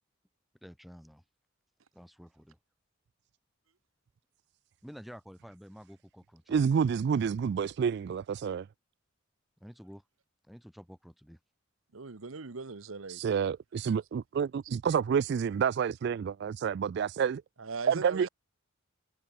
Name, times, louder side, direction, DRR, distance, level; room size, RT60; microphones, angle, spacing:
voice 1, 0.6-1.2 1.9-2.6 4.8-6.6 9.6-10.0 10.4-11.4, equal, ahead, 3.0 m, -50 dB
voice 2, 6.5-8.7 13.1-17.4 17.9-18.3, right 7 dB, 55° right, 0.3 m, -29 dB
voice 3, 11.9-13.2 17.6-18.3, right 4 dB, 85° right, 1.0 m, -39 dB
head